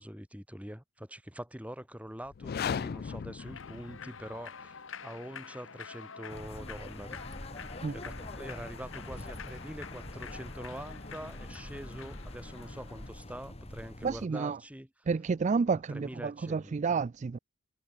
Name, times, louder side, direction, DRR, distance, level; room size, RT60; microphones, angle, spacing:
voice 1, 0.0-7.2 7.9-14.9 15.7-16.7, equal, 5° right, 3.0 m, -44 dB
sound 1, 2.3-4.4, left 7 dB, 45° left, 0.3 m, -36 dB
Human voice / Clapping / Cheering, 3.4-13.1, left 6 dB, 60° left, 1.3 m, -48 dB
sound 2, 6.3-14.2, left 1 dB, 30° left, 2.3 m, -44 dB
voice 2, 14.0-14.6 15.1-17.4, right 5 dB, 35° right, 0.3 m, -30 dB
head